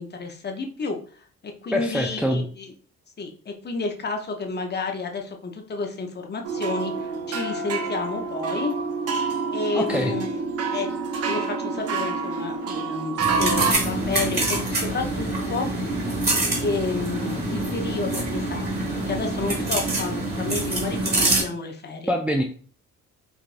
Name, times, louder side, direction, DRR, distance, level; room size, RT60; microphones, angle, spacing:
voice 1, 0.0-2.7 3.2-8.7 9.5-10.4 10.7-10.9 11.3-15.9 16.6-22.1, left 4 dB, 35° left, 3 dB, 0.7 m, -31 dB
voice 2, 1.7-2.5 9.7-10.2 22.1-22.4, equal, 5° right, 2 dB, 0.4 m, -24 dB
sound 1, 6.4-13.7, right 4 dB, 55° right, 0.7 m, -27 dB
sound 2, 13.2-21.4, right 2 dB, 35° right, 1.5 m, -25 dB
4.8 x 2.5 x 2.5 m, 0.43 s
cardioid pair, 90°, 30 cm